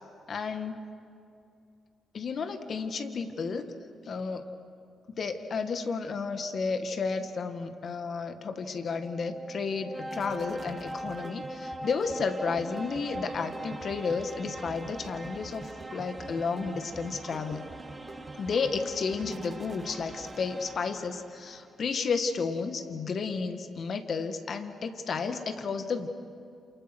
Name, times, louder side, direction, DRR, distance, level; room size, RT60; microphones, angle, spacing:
voice 1, 0.3-0.8 2.1-3.7 4.1-4.5 5.2-17.7 18.4-26.1, left 5 dB, 55° left, 8 dB, 1.9 m, -32 dB
sound 1, 8.4-20.8, right 3 dB, 35° right, 1.2 m, -47 dB
sound 2, 8.8-21.6, right 1 dB, 20° right, 2.4 m, -42 dB
28.5 x 28.5 x 6.2 m, 2.6 s
supercardioid pair, 55°, 0 cm